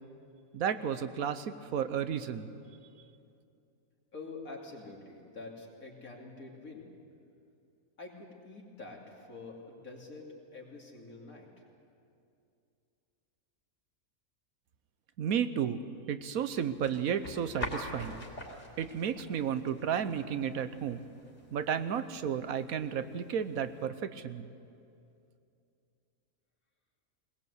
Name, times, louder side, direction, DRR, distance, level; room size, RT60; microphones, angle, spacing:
voice 1, 0.5-2.5 15.2-15.8 16.1-18.2 18.8-21.0 21.5-24.5, right 8 dB, 75° right, 12 dB, 1.3 m, -33 dB
voice 2, 4.1-6.9 8.0-11.7, left 3 dB, 70° left, -1 dB, 3.2 m, -47 dB
sound 1, 16.5-23.9, left 1 dB, 50° left, 3.5 m, -46 dB
20.5 x 20.0 x 8.1 m, 2.5 s
omnidirectional pair, 1.5 m